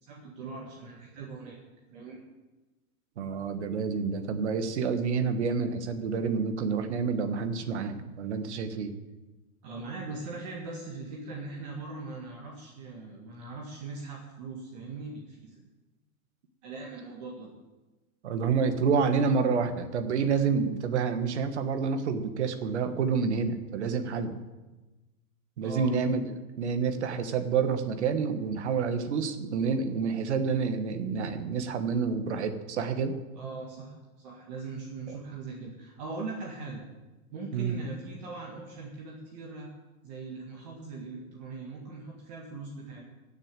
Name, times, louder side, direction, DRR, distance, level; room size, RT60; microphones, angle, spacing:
voice 1, 0.0-1.6 1.9-2.2 9.6-15.5 16.6-17.5 25.6-26.0 33.3-36.8 37.3-39.7 40.0-43.0, right 3 dB, 30° right, -2 dB, 1.8 m, -40 dB
voice 2, 3.2-8.9 18.2-24.4 25.6-33.1 37.5-37.8, right 5 dB, 50° right, 8 dB, 1.4 m, -28 dB
15.0 x 6.7 x 8.9 m, 1.1 s
hypercardioid pair, 175°, 43 cm